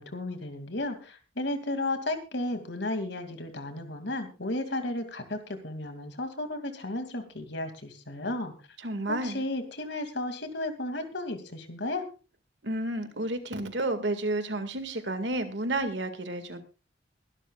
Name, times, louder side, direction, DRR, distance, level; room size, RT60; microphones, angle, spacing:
voice 1, 0.0-8.5 9.1-12.0, left 1 dB, 70° left, 8 dB, 2.6 m, -33 dB
voice 2, 8.8-9.4 12.6-16.6, right 2 dB, 70° right, 9 dB, 2.1 m, -31 dB
23.0 x 12.0 x 2.4 m, 0.32 s
head